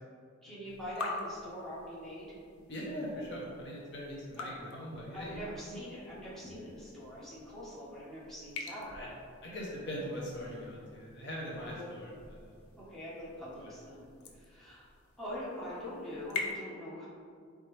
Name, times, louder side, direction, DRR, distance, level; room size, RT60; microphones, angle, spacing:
voice 1, 0.4-2.4 4.4-4.6 5.1-9.1 11.5-12.0 12.8-14.1 14.3-14.9 15.2-17.1, equal, ahead, -10 dB, 1.1 m, -43 dB
sound 1, 0.6-16.5, left 3 dB, 85° left, 0.6 m, -46 dB
voice 2, 2.7-5.4 8.9-9.1 9.4-12.1 12.4-12.6 13.6-13.7, equal, 55° left, -4 dB, 0.8 m, -41 dB
4.4 x 3.6 x 3.3 m, 2.2 s
head